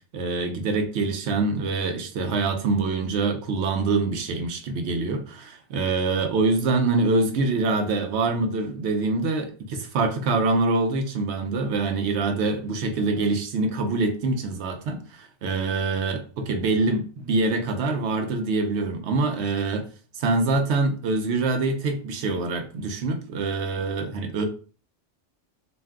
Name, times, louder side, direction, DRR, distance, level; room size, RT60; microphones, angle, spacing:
voice 1, 0.1-19.9 20.1-24.4, right 3 dB, 75° right, 0.9 m, -25 dB
2.6 x 2.2 x 3.5 m
omnidirectional pair, 1.2 m